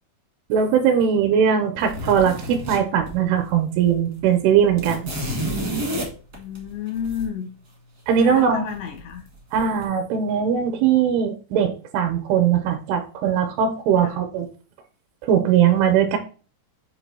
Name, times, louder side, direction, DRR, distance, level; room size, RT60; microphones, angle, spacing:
voice 1, 0.5-5.1 8.1-8.6 9.5-14.5 15.2-16.2, right 8 dB, 80° right, 6 dB, 3.3 m, -20 dB
sound 1, 1.8-3.5 3.8-3.9 4.2-7.2 8.7-9.2 9.5-9.8, equal, 55° right, 1.0 m, -30 dB
voice 2, 6.3-7.5 8.1-9.2 14.0-14.2, left 8 dB, 85° left, 1 dB, 1.5 m, -31 dB
8.2 x 2.8 x 5.4 m, 0.37 s
omnidirectional pair, 5.6 m